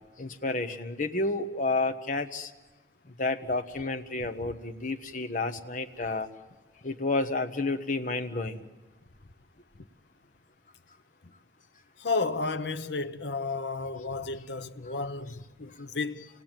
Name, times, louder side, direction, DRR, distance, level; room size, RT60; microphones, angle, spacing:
voice 1, 0.2-2.5 3.2-6.3 6.8-8.6, left 2 dB, 40° left, 1.2 m, -30 dB
voice 2, 12.0-16.3, left 3 dB, 65° left, 0.9 m, -32 dB
27.5 x 19.0 x 9.1 m
head